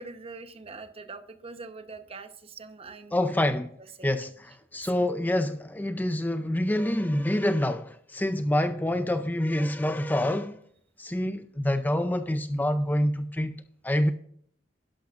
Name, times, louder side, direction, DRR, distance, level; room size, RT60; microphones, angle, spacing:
voice 1, 0.0-3.5 4.0-4.1 4.7-4.9 9.6-9.7, right 3 dB, 35° right, 1.0 m, -43 dB
voice 2, 3.1-3.8 4.0-10.6 11.0-13.6 13.8-14.1, left 1 dB, 10° left, 0.5 m, -27 dB
11.5 x 11.5 x 2.5 m
head